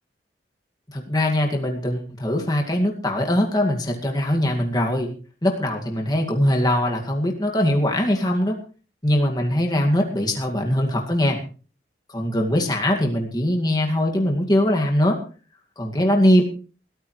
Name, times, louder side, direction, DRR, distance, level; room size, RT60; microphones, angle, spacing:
voice 1, 0.9-5.1 5.4-8.6 9.0-11.4 12.1-15.2 15.8-16.4, left 1 dB, 20° left, 1 dB, 2.1 m, -21 dB
22.0 x 13.5 x 3.2 m, 0.37 s
head